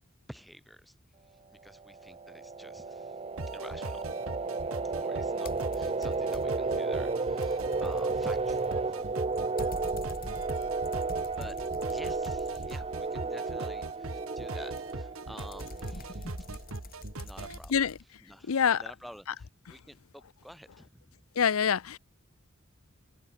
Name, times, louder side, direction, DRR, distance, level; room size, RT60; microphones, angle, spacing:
voice 1, 0.3-0.9 1.3-3.2 3.5-4.3 4.9-9.2 11.3-11.6 11.9-17.9 18.2-21.3, equal, ahead, 4.5 m, -50 dB
sound 1, 1.9-16.4, right 3 dB, 25° right, 0.6 m, -33 dB
sound 2, 3.4-17.6, right 2 dB, 70° right, 1.8 m, -41 dB
sound 3, 5.4-6.7 7.1-13.3 14.8-18.0, left 1 dB, 45° left, 4.2 m, -46 dB
voice 2, 18.5-18.8 21.4-22.0, left 7 dB, 75° left, 0.6 m, -25 dB
head